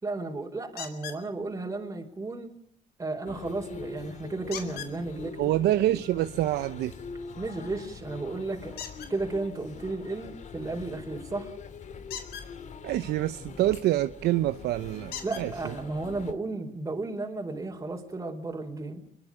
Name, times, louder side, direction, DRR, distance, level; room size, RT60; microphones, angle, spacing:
voice 1, 0.0-2.5 3.0-5.6 7.4-8.8 9.1-11.5 15.2-19.0, right 3 dB, 20° right, 1 dB, 4.6 m, -34 dB
sound 1, 0.8-1.2 4.5-4.9 8.8-9.1 12.0-12.5 14.1-14.2 15.1-15.5 16.5-16.6 17.0-17.1, left 9 dB, 70° left, 4.7 m, -39 dB
sound 2, 3.3-16.3, left 5 dB, 45° left, 2.6 m, -43 dB
voice 2, 5.4-6.9 12.8-15.7, right 14 dB, 75° right, 11 dB, 0.9 m, -26 dB
29.0 x 22.5 x 5.1 m, 0.64 s
cardioid pair, 110°, 17 cm